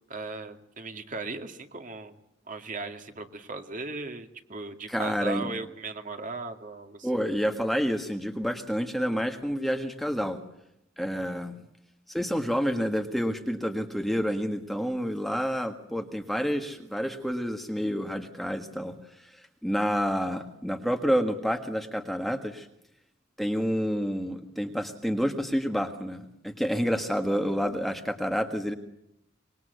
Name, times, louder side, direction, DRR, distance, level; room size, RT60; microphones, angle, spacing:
voice 1, 0.1-2.2 2.5-7.1, right 3 dB, 40° right, 6 dB, 2.3 m, -37 dB
voice 2, 4.9-5.5 7.0-10.4 11.0-11.5 12.1-18.9 19.2-19.3 19.6-22.7 23.4-28.7, equal, ahead, 5 dB, 1.7 m, -29 dB
25.5 x 22.5 x 8.1 m, 0.84 s
head